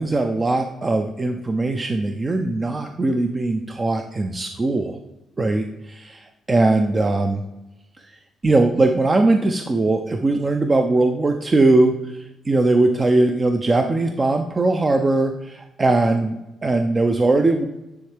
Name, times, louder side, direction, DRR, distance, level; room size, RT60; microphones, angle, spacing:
voice 1, 0.0-5.0 5.4-7.4 8.0-8.1 8.4-17.7, right 2 dB, 25° right, 5 dB, 0.5 m, -20 dB
9.5 x 3.5 x 3.3 m, 0.96 s
cardioid pair, 90°, 0 cm